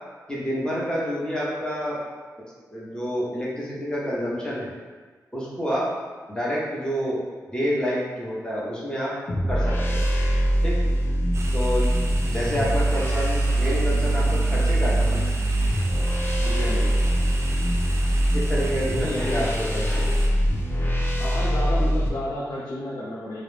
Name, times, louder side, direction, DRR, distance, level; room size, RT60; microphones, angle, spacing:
voice 1, 0.3-2.0 2.7-4.7 5.3-5.9 6.3-7.2 7.5-9.1 9.5-10.0 10.6-10.8 11.5-11.9 12.3-15.2 18.3-20.1, equal, 10° left, -6 dB, 0.9 m, -28 dB
sound 1, 9.3-22.1, right 1 dB, 30° left, 0.4 m, -23 dB
sound 2, 11.3-20.3, right 2 dB, 40° right, 0.4 m, -36 dB
voice 2, 16.4-17.0 18.8-19.6 21.2-23.4, left 1 dB, 75° left, -8 dB, 0.5 m, -31 dB
2.3 x 2.0 x 3.2 m, 1.5 s
cardioid pair, 55°, 7 cm